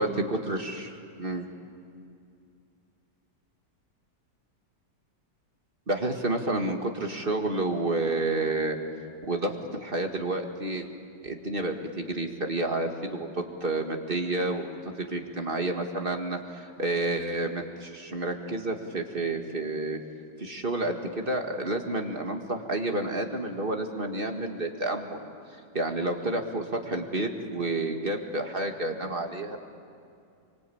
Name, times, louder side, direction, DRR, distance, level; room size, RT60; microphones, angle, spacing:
voice 1, 0.0-1.5 5.9-8.8 9.2-10.9 11.2-20.0 20.4-29.6, right 2 dB, 35° right, 3 dB, 2.0 m, -30 dB
27.0 x 24.5 x 8.6 m, 2.5 s
omnidirectional pair, 1.8 m